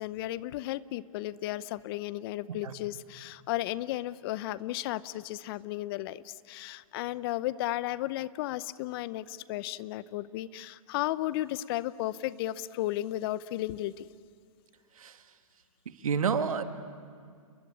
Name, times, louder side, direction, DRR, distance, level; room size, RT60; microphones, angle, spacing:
voice 1, 0.0-14.1, left 15 dB, 40° left, 18 dB, 0.7 m, -34 dB
voice 2, 16.0-16.6, right 6 dB, 75° right, 8 dB, 1.8 m, -29 dB
30.0 x 21.5 x 8.7 m, 2.2 s
hypercardioid pair, 120°, 18 cm